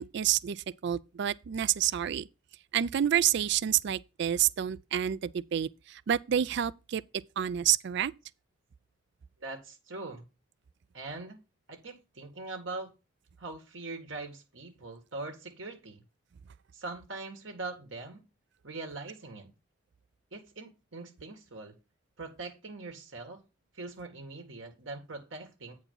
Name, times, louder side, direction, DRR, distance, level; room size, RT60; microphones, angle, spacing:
voice 1, 0.0-2.3 2.7-7.0 7.4-8.1, right 10 dB, 60° right, 0.4 m, -28 dB
voice 2, 9.4-10.3 10.9-11.4 11.7-12.9 13.4-16.0 16.7-18.2 18.6-19.5 20.3-21.7 22.2-23.4 23.7-25.8, right 3 dB, 80° right, 2.0 m, -42 dB
9.0 x 4.6 x 5.6 m
head